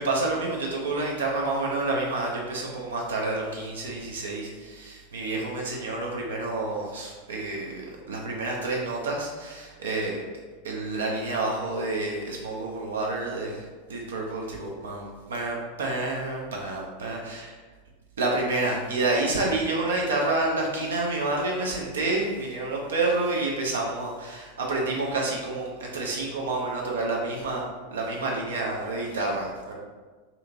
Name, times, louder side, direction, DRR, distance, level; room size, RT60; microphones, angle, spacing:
voice 1, 0.0-10.2 10.6-17.6 18.2-29.7, right 2 dB, 65° right, -2 dB, 0.4 m, -29 dB
2.8 x 2.6 x 2.4 m, 1.4 s
figure-of-eight pair, 85°, 0 cm